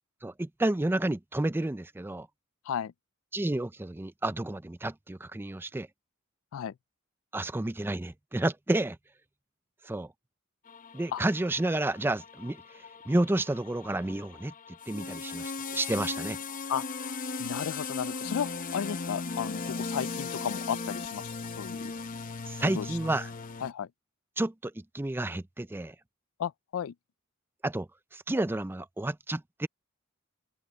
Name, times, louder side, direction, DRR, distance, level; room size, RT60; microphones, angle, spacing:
voice 1, 0.2-2.3 3.3-5.9 7.3-9.0 9.8-10.1 10.9-12.6 13.1-14.5 14.9-16.4 22.5-23.3 24.4-25.9 27.6-29.7, right 1 dB, 10° right, 0.4 m, -30 dB
sound 1, 10.7-23.7, left 4 dB, 40° left, 0.7 m, -38 dB
voice 2, 17.4-21.3 21.6-21.9 22.8-22.9 23.6-23.9 26.4-26.9, left 8 dB, 70° left, 0.3 m, -34 dB
open air
head